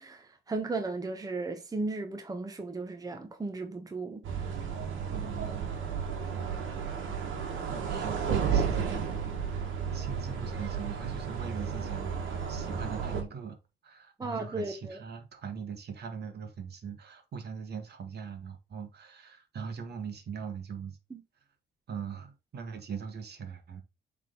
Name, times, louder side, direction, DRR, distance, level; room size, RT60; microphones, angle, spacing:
voice 1, 0.0-4.5 14.2-15.0 21.1-21.2, right 3 dB, 20° right, 1.0 m, -36 dB
sound 1, 4.2-13.2, right 7 dB, 80° right, 1.8 m, -33 dB
voice 2, 5.0-5.8 7.7-13.6 13.8-21.0 21.9-23.8, right 6 dB, 55° right, 1.7 m, -41 dB
7.4 x 3.7 x 3.9 m
cardioid pair, 90°, 20 cm